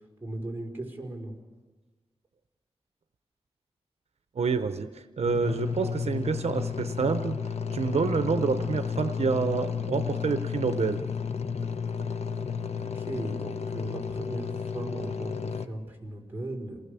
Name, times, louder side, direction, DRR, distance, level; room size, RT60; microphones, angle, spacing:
voice 1, 0.0-1.3 12.9-16.8, right 1 dB, 20° right, 0 dB, 5.4 m, -37 dB
voice 2, 4.4-7.4 7.7-11.0, right 5 dB, 75° right, 9 dB, 0.8 m, -28 dB
sound 1, 5.2-15.7, left 6 dB, 90° left, 0.9 m, -32 dB
sound 2, 7.7-12.8, equal, 35° left, 7.4 m, -45 dB
28.0 x 19.5 x 6.9 m, 1.3 s
wide cardioid pair, 95°, 11 cm